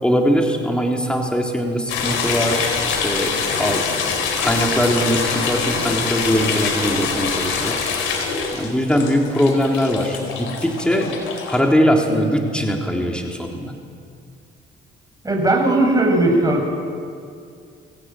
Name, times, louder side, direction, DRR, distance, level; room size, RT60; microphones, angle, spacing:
voice 1, 0.0-3.8 4.4-7.8 8.5-11.2 11.5-13.7, equal, 5° left, 1 dB, 3.5 m, -21 dB
sound 1, 1.9-11.6, left 5 dB, 90° left, 4.1 m, -24 dB
voice 2, 15.2-16.7, right 2 dB, 20° right, 1 dB, 6.8 m, -17 dB
23.5 x 17.0 x 9.1 m, 2.3 s
cardioid pair, 90°, 20 cm